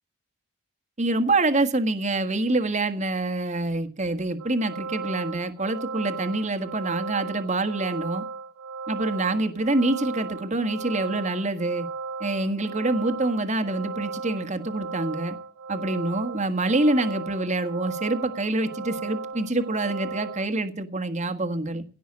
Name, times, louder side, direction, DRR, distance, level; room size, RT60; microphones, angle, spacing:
voice 1, 1.0-8.2 8.9-11.9 12.2-15.4 15.7-21.8, right 2 dB, 30° right, 1.5 m, -26 dB
sound 1, 4.4-20.5, right 4 dB, 80° right, 1.4 m, -36 dB
17.0 x 6.1 x 8.6 m
head